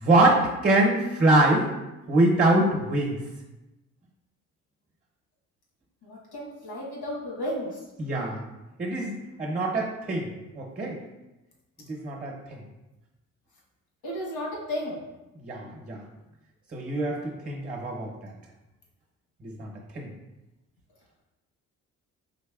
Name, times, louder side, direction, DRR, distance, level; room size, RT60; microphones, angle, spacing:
voice 1, 0.0-1.7 2.1-3.2 8.0-8.4 8.8-11.0 11.9-12.4 15.4-16.0 16.7-18.3 19.4-20.1, right 2 dB, 30° right, -1 dB, 0.7 m, -24 dB
voice 2, 6.0-7.8 14.0-15.0, equal, 90° left, -4 dB, 1.3 m, -33 dB
4.0 x 3.2 x 2.3 m, 1.0 s
cardioid pair, 90°, 30 cm